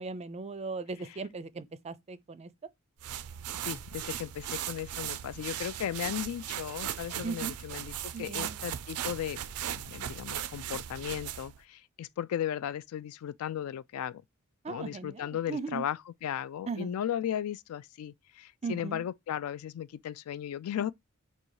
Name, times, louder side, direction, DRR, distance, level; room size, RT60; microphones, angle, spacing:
voice 1, 0.0-2.5 7.2-7.5 8.1-8.6 14.6-15.8 16.7-17.0 18.6-19.0, right 4 dB, 30° right, 0.4 m, -38 dB
sound 1, 3.0-11.6, right 11 dB, 90° right, 0.4 m, -38 dB
voice 2, 3.6-9.4 9.7-14.2 14.7-20.9, left 10 dB, 70° left, 0.3 m, -36 dB
4.0 x 2.3 x 4.6 m
head